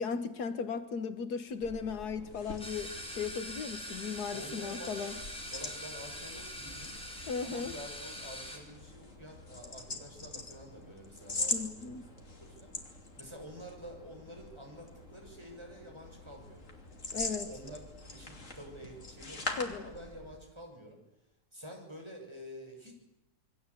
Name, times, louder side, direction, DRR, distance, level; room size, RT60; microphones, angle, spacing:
voice 1, 0.0-5.2 7.3-7.7 11.5-12.1 17.1-17.5 19.6-19.9, left 5 dB, 80° left, 1.8 m, -36 dB
sound 1, 1.5-20.4, left 3 dB, 50° left, 3.3 m, -43 dB
sound 2, 2.6-8.6, equal, 5° left, 4.9 m, -43 dB
voice 2, 4.3-5.2 5.5-6.9 7.4-12.0 12.3-16.7 17.1-21.0 21.5-22.9, equal, 15° right, 6.8 m, -49 dB
28.0 x 23.0 x 8.5 m
omnidirectional pair, 1.7 m